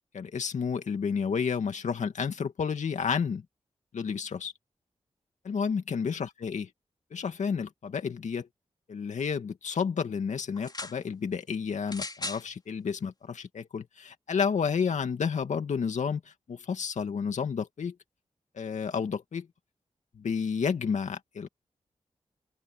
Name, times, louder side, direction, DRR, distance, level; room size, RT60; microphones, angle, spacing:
voice 1, 0.1-3.4 3.9-4.5 5.4-6.7 7.1-8.5 8.9-17.9 18.6-19.5 20.1-21.5, left 6 dB, 85° left, 2.3 m, -31 dB
sound 1, 10.5-11.0 11.9-12.5 13.4-13.5, left 2 dB, 35° left, 4.9 m, -37 dB
open air
cardioid pair, 50°, 12 cm